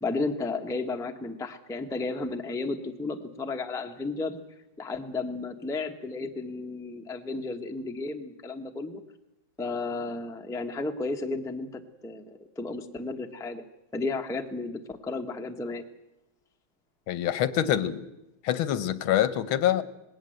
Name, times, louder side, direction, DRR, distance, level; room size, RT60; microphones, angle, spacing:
voice 1, 0.0-4.4 4.8-9.0 9.6-13.6 13.9-15.8, left 3 dB, 5° left, 5 dB, 0.7 m, -33 dB
voice 2, 17.1-18.0 18.4-19.8, left 11 dB, 85° left, 15 dB, 1.7 m, -25 dB
19.5 x 17.5 x 7.8 m, 0.92 s
omnidirectional pair, 2.2 m